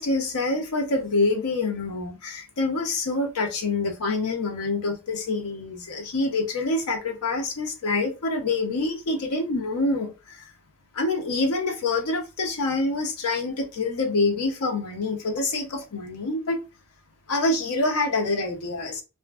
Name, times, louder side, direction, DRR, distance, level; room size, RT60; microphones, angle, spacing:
voice 1, 0.0-10.4 10.9-16.6 17.3-19.0, left 3 dB, 80° left, 0.6 m, -26 dB
2.7 x 2.4 x 2.3 m
head